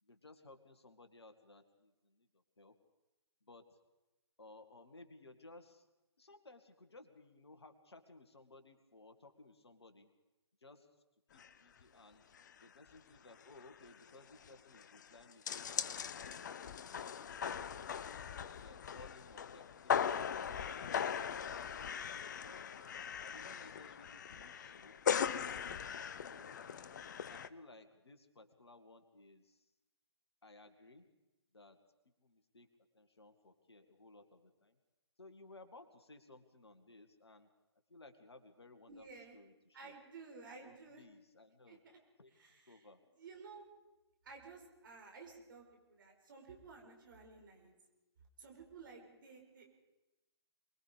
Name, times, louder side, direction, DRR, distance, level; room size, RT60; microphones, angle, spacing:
voice 1, 0.0-2.8 3.4-3.7 4.4-5.9 6.2-10.1 10.6-10.9 11.3-12.2 12.6-16.4 16.9-17.6 18.3-22.7 23.2-25.0 25.7-26.6 27.3-29.7 30.4-31.1 31.5-31.8 32.2-32.7 32.9-34.8 35.2-37.5 37.9-39.1 39.3-40.0 40.6-41.8 42.2-43.0, left 2 dB, 65° left, 7 dB, 2.2 m, -59 dB
sound 1, 11.4-11.5 11.8-11.9 12.3-12.6 12.9-13.0 13.3-27.5, left 8 dB, 40° left, 0.7 m, -40 dB
voice 2, 38.9-39.4 39.7-41.0 41.7-42.0 42.3-42.9 43.2-43.6 44.2-47.8 48.4-49.8, right 4 dB, 50° right, 2 dB, 4.8 m, -54 dB
24.0 x 21.0 x 5.1 m, 1.0 s
figure-of-eight pair, 130°, 14 cm